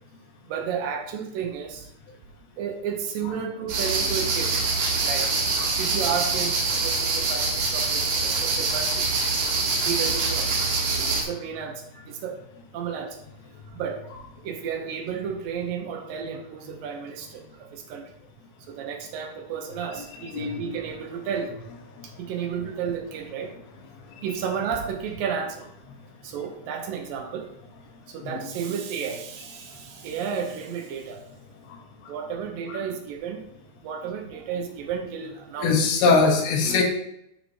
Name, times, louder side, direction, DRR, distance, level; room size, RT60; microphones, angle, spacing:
voice 1, 0.5-1.9 2.6-4.6 5.0-9.1 9.8-10.5 11.1-12.4 12.7-13.2 13.7-14.0 14.4-18.1 18.7-21.6 22.0-23.5 24.2-25.7 26.2-27.5 28.1-31.2 32.1-33.5 33.8-35.7 36.7-36.8, right 7 dB, 75° right, 4 dB, 2.4 m, -32 dB
sound 1, 3.7-11.2, right 4 dB, 60° right, 2.8 m, -25 dB
voice 2, 20.3-20.8 22.0-22.1 24.2-24.3 28.2-28.4 31.7-31.8 32.0-32.1 32.7-32.8 35.6-36.8, left 4 dB, 90° left, 2 dB, 3.2 m, -22 dB
12.5 x 4.8 x 2.8 m, 0.77 s
omnidirectional pair, 4.3 m